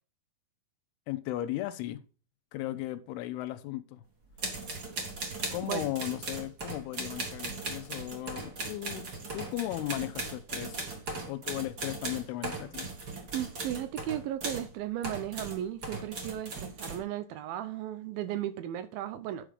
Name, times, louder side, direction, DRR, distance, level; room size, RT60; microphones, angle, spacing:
voice 1, 1.1-2.0 2.5-4.0 5.5-9.1 9.3-10.8 11.3-12.9, left 15 dB, 85° left, 2.8 m, -36 dB
sound 1, 4.3-14.7 15.0-17.0, right 3 dB, 40° right, 1.5 m, -38 dB
voice 2, 13.3-19.5, right 12 dB, 80° right, 2.4 m, -35 dB
10.0 x 4.9 x 5.1 m
omnidirectional pair, 4.5 m